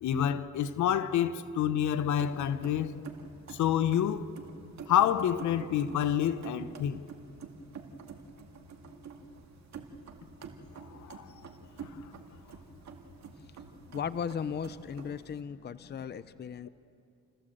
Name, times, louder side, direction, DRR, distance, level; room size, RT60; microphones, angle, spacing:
voice 1, 0.0-3.0 3.5-4.3 4.9-7.0 10.9-11.3, left 10 dB, 75° left, 1.0 m, -28 dB
Organ Keyboard Keys Depressed A, 2.0-15.4, right 5 dB, 65° right, 2.1 m, -48 dB
voice 2, 13.9-16.7, left 7 dB, 35° left, 0.6 m, -36 dB
28.5 x 15.0 x 7.8 m
cardioid pair, 90°, 30 cm